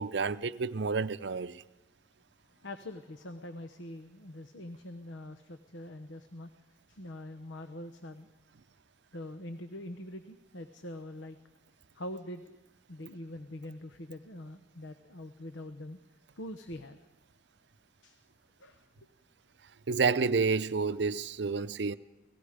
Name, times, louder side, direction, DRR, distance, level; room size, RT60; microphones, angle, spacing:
voice 1, 0.0-1.6 19.9-22.0, right 4 dB, 60° right, 0.6 m, -29 dB
voice 2, 2.6-6.5 6.9-8.3 9.1-11.4 11.9-12.5 12.9-16.0 16.4-17.0 18.0-18.2 18.6-18.8, left 1 dB, 75° left, 1.0 m, -44 dB
30.0 x 18.5 x 5.1 m
head